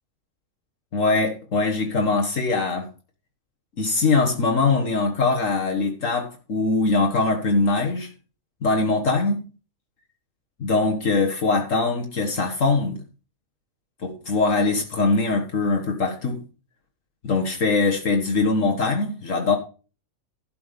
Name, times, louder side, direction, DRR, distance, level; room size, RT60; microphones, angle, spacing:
voice 1, 0.9-2.9 3.8-8.1 8.6-9.4 10.6-13.0 14.0-16.4 17.2-19.6, left 3 dB, 65° left, 1.9 m, -22 dB
11.5 x 7.0 x 5.2 m
omnidirectional pair, 1.5 m